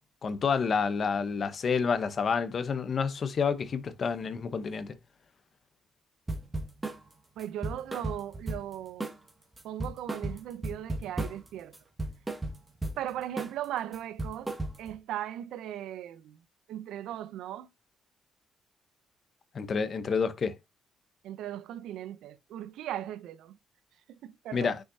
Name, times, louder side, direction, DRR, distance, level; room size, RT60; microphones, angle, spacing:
voice 1, 0.2-4.9 19.5-20.5 24.5-24.8, left 5 dB, 50° left, 1.0 m, -29 dB
sound 1, 6.3-7.0 7.4-8.7 9.0-9.3 9.6-11.5 11.7-13.0 13.4-13.6 13.9-15.0, right 2 dB, 15° right, 1.8 m, -35 dB
voice 2, 7.4-9.1 9.6-11.8 13.0-14.5 14.8-16.4 16.7-17.7 21.2-23.6 24.1-24.7, right 11 dB, 85° right, 0.6 m, -38 dB
6.5 x 5.5 x 2.8 m
cardioid pair, 90°, 0 cm